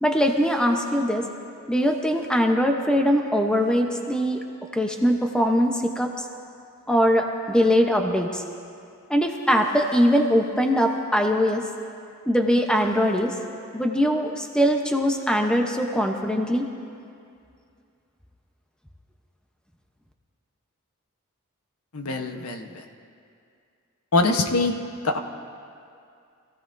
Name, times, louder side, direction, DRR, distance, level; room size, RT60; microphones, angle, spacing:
voice 1, 0.0-1.3 1.7-4.4 4.7-6.2 6.9-8.4 9.1-11.6 12.3-13.3 13.7-16.7, equal, 5° left, 2 dB, 0.8 m, -22 dB
voice 2, 21.9-22.7 24.1-24.7 25.0-25.2, left 2 dB, 80° left, 5 dB, 1.0 m, -23 dB
25.0 x 15.5 x 2.6 m, 2.4 s
head